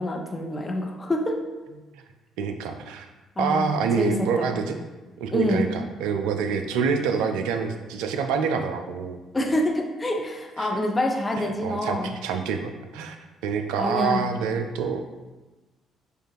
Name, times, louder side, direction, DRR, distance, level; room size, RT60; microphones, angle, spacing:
voice 1, 0.0-1.4 3.4-3.7 4.0-4.5 5.3-5.6 9.3-12.1 13.8-14.3, left 1 dB, 20° left, 1 dB, 0.8 m, -26 dB
voice 2, 2.4-3.1 3.4-4.8 5.2-9.2 10.6-10.7 11.6-13.2 13.4-15.0, right 5 dB, 70° right, 6 dB, 0.4 m, -26 dB
6.4 x 2.5 x 3.2 m, 1.2 s
figure-of-eight pair, 45°, 0 cm